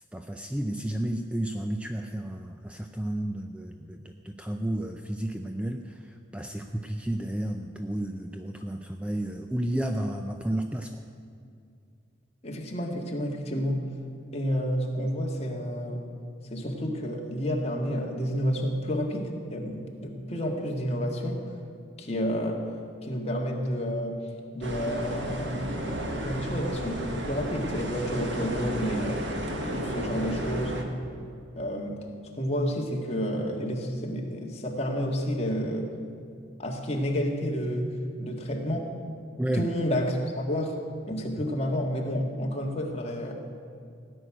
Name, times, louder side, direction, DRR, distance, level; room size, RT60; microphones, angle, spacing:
voice 1, 0.1-10.9 39.4-39.7, right 1 dB, 5° right, 5 dB, 0.4 m, -32 dB
voice 2, 12.4-13.8 14.3-16.0 16.5-21.4 22.0-22.6 23.0-24.2 24.5-29.2 29.7-30.7 31.5-32.0 32.4-35.9 36.6-38.9 39.5-43.3, equal, 30° left, 0 dB, 1.7 m, -30 dB
sound 1, 24.6-30.8, right 1 dB, 65° right, 1.6 m, -33 dB
17.0 x 6.3 x 9.9 m, 2.4 s
head